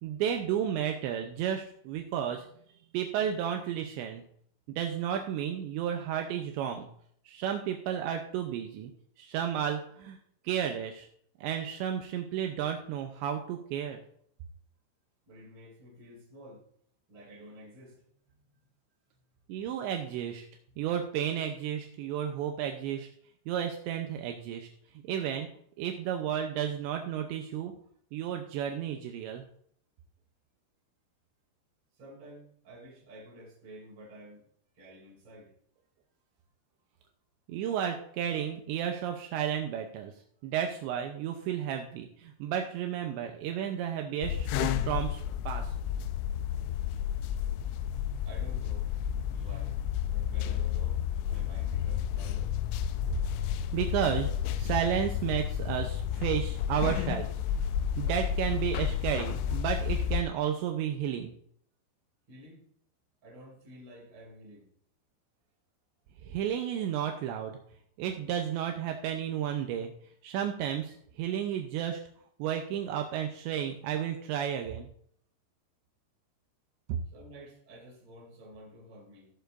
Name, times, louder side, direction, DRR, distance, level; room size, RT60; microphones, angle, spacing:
voice 1, 0.0-2.5 2.9-4.2 4.8-6.9 7.3-8.9 9.2-10.2 10.4-11.1 11.4-14.0 19.5-20.5 20.8-23.1 23.5-24.7 25.0-25.5 25.8-27.7 28.1-29.4 37.5-40.1 40.4-45.7 53.7-54.3 54.6-57.3 58.0-61.3 66.3-67.5 68.0-69.9 70.2-72.0 72.4-74.9 76.9-77.0, right 9 dB, 85° right, 4 dB, 2.6 m, -32 dB
voice 2, 15.3-16.6 17.1-18.6 20.7-20.8 31.9-34.5 34.7-35.5 46.8-46.9 48.2-48.9 49.3-49.8 50.1-52.5 62.3-62.7 63.2-64.7 77.1-79.3, right 1 dB, 30° right, -1 dB, 2.5 m, -51 dB
sound 1, 44.2-60.2, left 9 dB, 85° left, 2.8 m, -31 dB
18.5 x 6.8 x 2.6 m, 0.66 s
omnidirectional pair, 5.8 m